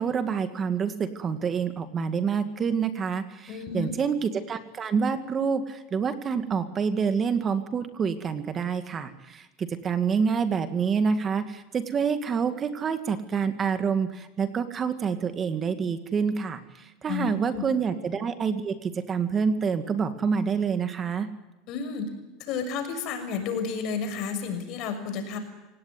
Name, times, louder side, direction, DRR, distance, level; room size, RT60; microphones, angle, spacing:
voice 1, 0.0-21.3, right 6 dB, 30° right, 9 dB, 2.0 m, -27 dB
voice 2, 3.5-3.9 17.0-17.6 21.7-22.1 22.4-25.4, left 6 dB, 55° left, 7 dB, 6.3 m, -31 dB
27.0 x 18.0 x 9.6 m, 1.1 s
supercardioid pair, 125°, 0 cm